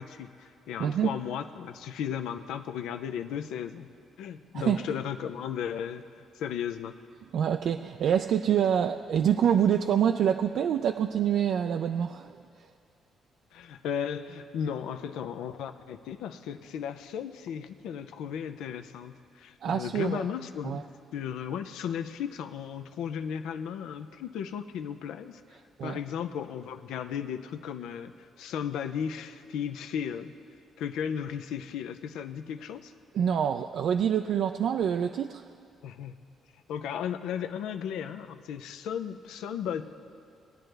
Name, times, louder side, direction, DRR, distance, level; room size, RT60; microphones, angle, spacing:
voice 1, 0.0-3.9 4.2-6.0 6.4-7.0 13.5-20.9 21.1-25.4 25.8-30.3 30.8-32.9 35.8-36.2 36.7-39.8, left 8 dB, 85° left, 9 dB, 0.5 m, -35 dB
voice 2, 0.8-1.1 4.5-4.8 7.3-12.4 19.6-20.2 20.6-20.8 25.8-26.0 33.1-35.4, right 8 dB, 70° right, 6 dB, 0.3 m, -26 dB
19.5 x 9.1 x 3.3 m, 2.4 s
cardioid pair, 90°, 0 cm